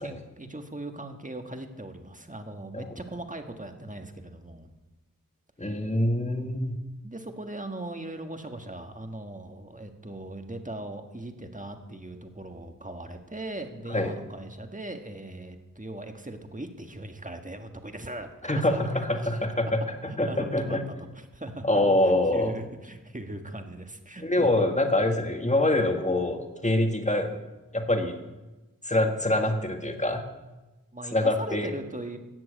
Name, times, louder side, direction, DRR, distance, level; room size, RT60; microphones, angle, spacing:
voice 1, 0.0-4.7 7.0-19.7 20.1-20.8 21.1-24.5 30.9-32.2, right 1 dB, 25° right, 6 dB, 1.6 m, -39 dB
voice 2, 5.6-6.7 13.9-14.1 18.5-19.8 20.2-20.8 21.6-22.5 24.2-27.4 27.7-28.2 28.8-30.2 31.1-31.7, left 1 dB, 20° left, 5 dB, 1.8 m, -25 dB
14.0 x 7.6 x 8.9 m, 1.1 s
wide cardioid pair, 50°, 34 cm